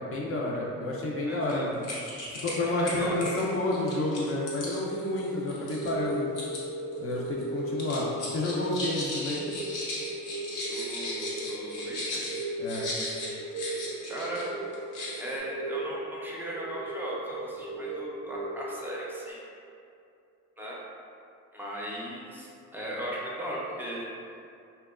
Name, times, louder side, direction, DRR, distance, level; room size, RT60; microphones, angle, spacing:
voice 1, 0.0-1.9 2.4-6.3 7.0-9.5 12.6-12.9, left 2 dB, 50° left, -3 dB, 0.4 m, -30 dB
voice 2, 1.2-1.7 2.6-3.2 10.6-12.3 14.1-14.6 15.2-19.4 20.6-20.8 21.5-24.1, right 1 dB, 5° right, -5 dB, 0.5 m, -37 dB
sound 1, 1.4-1.5 1.8-2.6 2.9-6.6 6.9-7.4 7.8-14.5 14.7-15.4, left 2 dB, 85° left, 0.6 m, -37 dB
sound 2, 3.0-19.3, right 1 dB, 90° right, 0.5 m, -37 dB
2.8 x 2.2 x 2.3 m, 2.5 s
cardioid pair, 90°, 30 cm